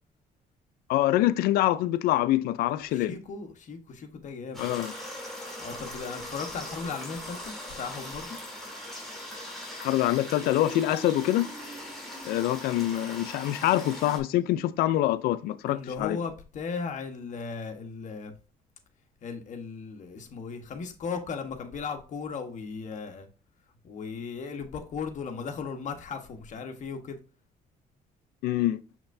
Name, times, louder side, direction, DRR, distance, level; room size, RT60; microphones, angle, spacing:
voice 1, 0.9-3.1 4.6-4.9 9.8-11.5 12.2-16.2 28.4-28.8, left 14 dB, 90° left, 0.4 m, -25 dB
voice 2, 2.9-4.6 5.6-8.4 15.7-18.3 19.2-23.3 23.8-27.2, left 5 dB, 55° left, 1.2 m, -37 dB
sound 1, 4.5-14.2, left 1 dB, ahead, 3.1 m, -40 dB
6.6 x 5.9 x 2.6 m
cardioid pair, 110°, 15 cm